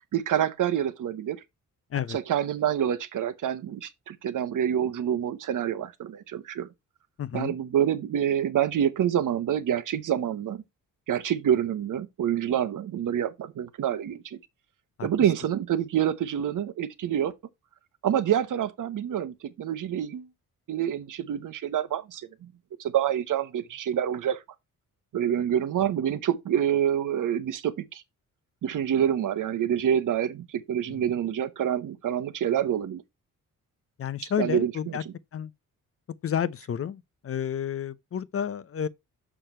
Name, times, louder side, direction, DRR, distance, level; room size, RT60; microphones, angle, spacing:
voice 1, 0.1-1.4 2.1-6.7 7.3-10.6 11.1-14.4 15.0-17.3 18.0-20.3 20.7-22.3 22.8-24.4 25.1-28.0 28.6-33.0 34.4-35.0, right 10 dB, 65° right, 1.0 m, -27 dB
voice 2, 7.2-7.6 15.0-15.1 30.9-31.1 34.0-35.0 35.3-35.5 36.2-38.9, left 8 dB, 40° left, 0.6 m, -31 dB
6.8 x 6.1 x 4.4 m
wide cardioid pair, 140°, 34 cm